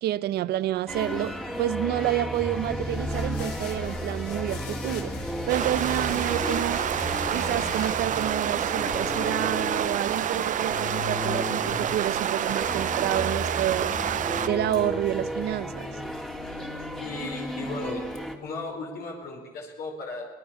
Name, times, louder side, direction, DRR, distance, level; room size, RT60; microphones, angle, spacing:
voice 1, 0.0-5.1 5.5-6.8 7.3-13.9 14.5-15.9, right 13 dB, 75° right, 0.9 m, -29 dB
sound 1, 0.9-18.3, equal, 5° left, 2.8 m, -33 dB
sound 2, 2.4-8.3, left 5 dB, 80° left, 4.3 m, -42 dB
sound 3, 5.5-14.5, right 10 dB, 50° right, 0.8 m, -28 dB
voice 2, 17.0-18.1 18.4-20.3, left 3 dB, 65° left, 5.2 m, -36 dB
24.5 x 19.0 x 7.2 m
cardioid pair, 110°, 17 cm